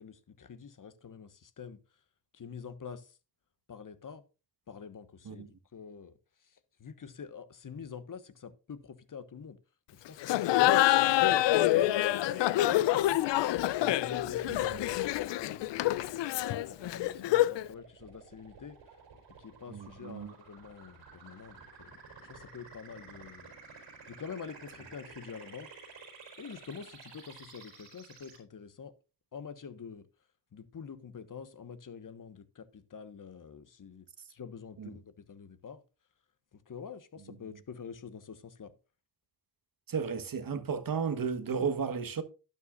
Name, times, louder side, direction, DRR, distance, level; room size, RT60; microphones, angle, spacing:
voice 1, 0.0-1.8 2.3-3.2 3.7-4.2 4.7-9.6 9.9-13.4 13.8-16.1 16.4-19.0 19.4-23.5 24.1-25.7 26.4-28.9 29.3-30.1 30.5-35.8 36.5-38.7, left 6 dB, 45° left, 1.4 m, -47 dB
Laughter, 10.2-17.7, left 14 dB, 75° left, 0.6 m, -26 dB
sound 1, 14.2-28.4, right 4 dB, 80° right, 4.1 m, -53 dB
voice 2, 19.7-20.3 34.8-34.9 39.9-42.2, right 6 dB, 50° right, 1.4 m, -33 dB
12.0 x 9.9 x 2.5 m
supercardioid pair, 45°, 43 cm